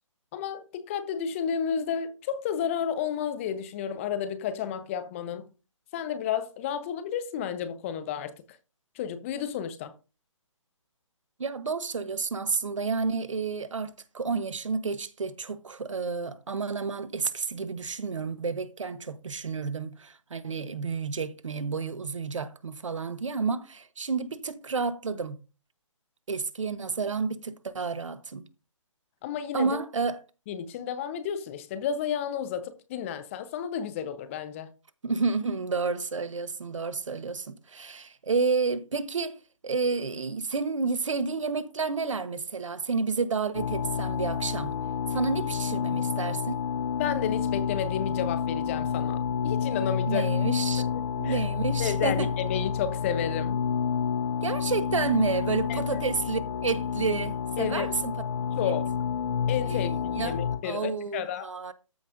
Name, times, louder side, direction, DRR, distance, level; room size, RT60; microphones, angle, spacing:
voice 1, 0.3-5.5 5.9-8.3 8.9-9.9 29.2-29.8 30.5-34.7 47.0-50.3 50.8-51.4 51.8-53.6 55.7-55.8 57.6-57.9 58.6-58.9 59.5-61.5, left 8 dB, 25° left, 0.8 m, -32 dB
voice 2, 11.4-25.4 26.3-28.4 29.5-30.2 35.0-39.4 39.6-44.8 45.1-46.6 50.1-50.9 51.1-52.3 54.4-58.1 59.7-60.4 60.6-61.7, right 4 dB, 70° right, 1.2 m, -30 dB
sound 1, 43.5-60.6, left 7 dB, 70° left, 1.6 m, -29 dB
14.0 x 5.7 x 2.6 m
figure-of-eight pair, 145°, 17 cm